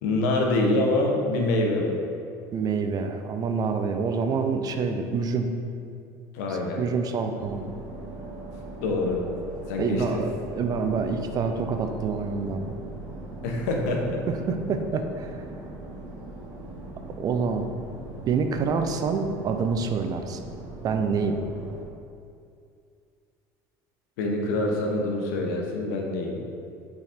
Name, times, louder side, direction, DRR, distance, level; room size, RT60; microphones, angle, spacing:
voice 1, 0.0-2.0 6.3-6.8 8.8-9.2 9.7-10.2 13.4-14.0 24.2-26.4, left 2 dB, 85° left, 0 dB, 1.0 m, -25 dB
voice 2, 2.5-5.5 6.5-7.6 9.8-12.7 14.3-15.4 17.2-17.7 18.3-20.4 20.8-21.4, right 5 dB, 45° right, 6 dB, 0.6 m, -27 dB
sound 1, 7.4-21.8, right 2 dB, 70° right, 1.1 m, -40 dB
5.8 x 3.9 x 4.3 m, 2.4 s
supercardioid pair, 100°, 9 cm